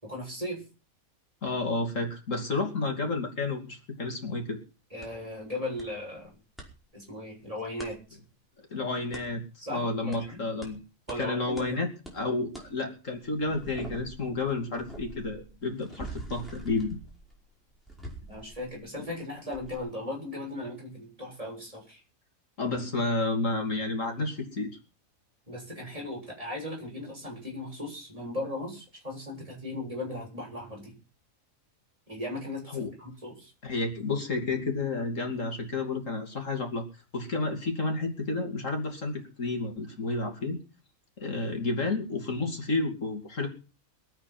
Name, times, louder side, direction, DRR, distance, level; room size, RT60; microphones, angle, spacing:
voice 1, 0.0-0.6 4.9-6.4 6.9-8.0 9.6-10.4 11.1-11.8 18.3-22.0 25.5-30.9 32.1-33.5, left 1 dB, 25° right, -2 dB, 7.3 m, -37 dB
voice 2, 1.4-4.6 8.7-9.4 9.7-10.8 11.2-17.0 22.6-24.7 32.7-32.9 33.6-36.8 37.1-40.6 41.2-43.5, left 3 dB, 65° left, 3 dB, 3.1 m, -31 dB
sound 1, 5.0-5.1 5.8-5.9 6.2-6.7 7.8-7.9 9.1-9.3 10.1-10.2 10.6-10.7 11.1-11.2 11.6-11.7 12.0-12.2 12.5-12.7 13.1-19.1 19.5-19.8, right 2 dB, ahead, 5.1 m, -44 dB
22.5 x 9.0 x 6.0 m, 0.35 s
omnidirectional pair, 1.4 m